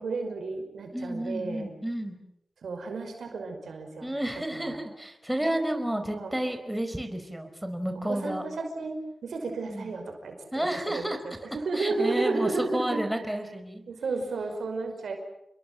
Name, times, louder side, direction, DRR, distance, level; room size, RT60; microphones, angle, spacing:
voice 1, 0.0-1.7 2.6-4.1 4.5-4.8 5.4-5.5 6.2-6.3 8.1-13.0 13.9-15.2, right 3 dB, 90° right, 5 dB, 5.5 m, -33 dB
voice 2, 0.9-2.2 4.0-8.4 9.6-9.9 10.5-11.2 11.7-13.8, right 1 dB, 5° right, 6 dB, 4.8 m, -31 dB
29.0 x 21.5 x 7.8 m, 0.80 s
cardioid pair, 55°, 0 cm